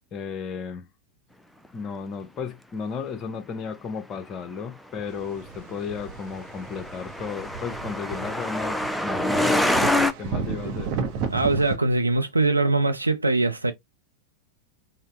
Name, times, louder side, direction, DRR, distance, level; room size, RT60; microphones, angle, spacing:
voice 1, 0.1-0.9 1.7-10.9, left 6 dB, 30° left, 0.8 m, -34 dB
sound 1, 5.1-11.8, right 5 dB, 45° right, 0.7 m, -33 dB
Truck, 6.0-10.1, left 1 dB, ahead, 0.4 m, -25 dB
voice 2, 11.3-13.7, right 2 dB, 85° right, 0.6 m, -22 dB
3.8 x 2.1 x 3.3 m
figure-of-eight pair, 90°, 0 cm